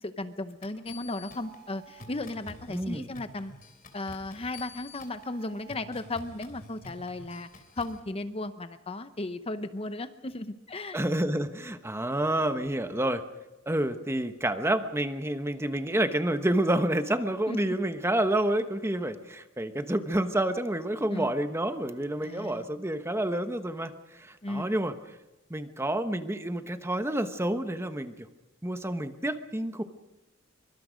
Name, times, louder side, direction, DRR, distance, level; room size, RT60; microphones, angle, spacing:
voice 1, 0.0-3.5 3.9-7.5 7.8-11.0 17.5-17.8 21.1-21.3 22.2-22.6 24.4-24.7, left 2 dB, 30° left, 10 dB, 0.8 m, -35 dB
sound 1, 0.6-8.0, left 1 dB, 45° left, 3.2 m, -48 dB
voice 2, 2.7-3.1 10.9-13.2 13.7-24.9 25.5-28.3 28.6-29.8, right 1 dB, 15° right, 9 dB, 1.1 m, -29 dB
24.0 x 24.0 x 5.2 m, 1.0 s
head